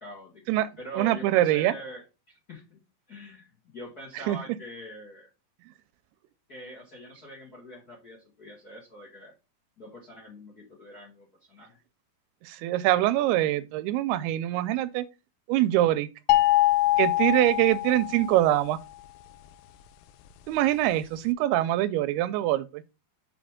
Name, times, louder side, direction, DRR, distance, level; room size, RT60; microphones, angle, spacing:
voice 1, 0.0-0.4 0.8-2.8 3.1-5.3 6.5-9.3 9.8-11.8, equal, 40° left, 1.4 m, -44 dB
voice 2, 0.9-1.7 4.1-4.4 12.4-15.1 15.5-16.1 17.0-18.8 20.5-22.8, right 14 dB, 85° right, 2.4 m, -24 dB
sound 1, 16.3-18.5, left 16 dB, 85° left, 2.6 m, -23 dB
6.5 x 5.0 x 3.6 m
omnidirectional pair, 4.6 m